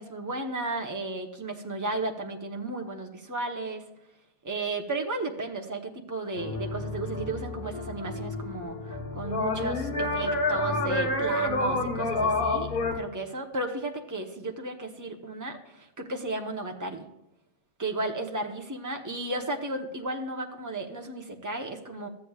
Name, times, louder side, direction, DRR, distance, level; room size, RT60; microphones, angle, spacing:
voice 1, 0.0-3.8 4.4-17.1 17.8-22.1, right 2 dB, 20° right, 2 dB, 1.0 m, -34 dB
sound 1, 6.4-13.0, left 2 dB, 55° left, 1.4 m, -29 dB
13.5 x 8.8 x 2.4 m, 0.90 s
omnidirectional pair, 1.0 m